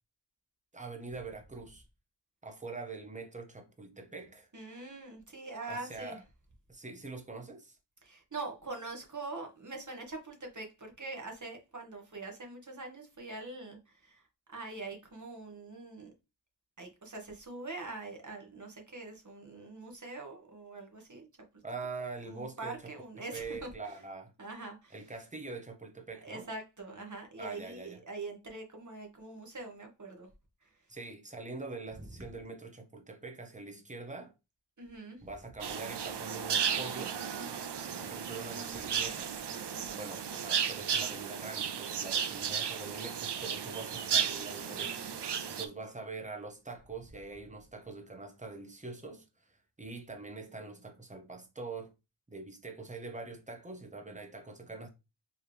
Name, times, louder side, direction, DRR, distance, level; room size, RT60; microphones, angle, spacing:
voice 1, 0.7-1.8 2.4-4.5 5.7-6.2 6.7-7.8 21.6-22.9 23.3-24.3 24.9-26.5 27.4-28.0 30.9-34.3 35.2-37.3 38.0-39.3 40.0-45.1 45.6-51.9 52.3-54.9, right 3 dB, 15° right, 0.9 m, -44 dB
voice 2, 4.5-6.2 8.0-14.2 14.5-16.1 16.8-21.3 22.3-23.7 24.4-25.0 26.2-30.3 30.6-30.7 34.8-35.2 39.7-40.1, right 3 dB, 40° right, 1.5 m, -43 dB
sound 1, 35.6-45.7, right 7 dB, 60° right, 0.6 m, -34 dB
4.7 x 3.1 x 3.4 m
wide cardioid pair, 95°, 46 cm